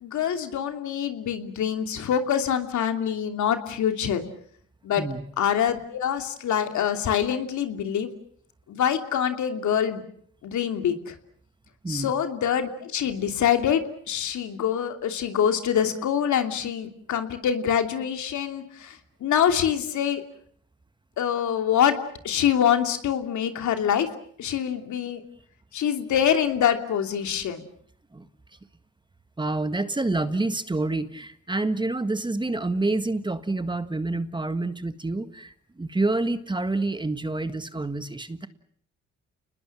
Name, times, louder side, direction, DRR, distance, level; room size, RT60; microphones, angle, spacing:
voice 1, 0.0-4.2 4.8-5.0 5.4-8.1 8.7-10.0 10.4-11.1 11.9-19.0 19.2-20.2 21.2-21.9 22.2-24.1 24.4-25.2 25.7-27.6, left 9 dB, 70° left, 6 dB, 3.0 m, -25 dB
voice 2, 5.0-5.3 11.8-12.1 28.1-28.3 29.4-38.5, right 2 dB, 15° right, 11 dB, 1.6 m, -28 dB
29.5 x 20.5 x 7.5 m, 0.62 s
cardioid pair, 90°, 30 cm